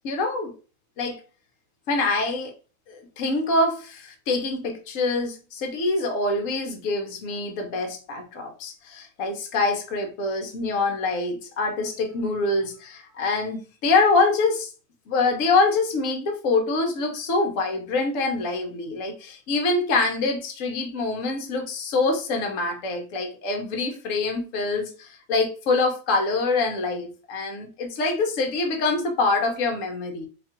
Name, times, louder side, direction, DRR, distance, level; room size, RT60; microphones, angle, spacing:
voice 1, 0.0-0.5 1.0-1.2 1.9-2.5 2.9-14.7 15.1-30.3, left 3 dB, 60° left, 1.1 m, -25 dB
2.9 x 2.4 x 4.2 m
omnidirectional pair, 1.7 m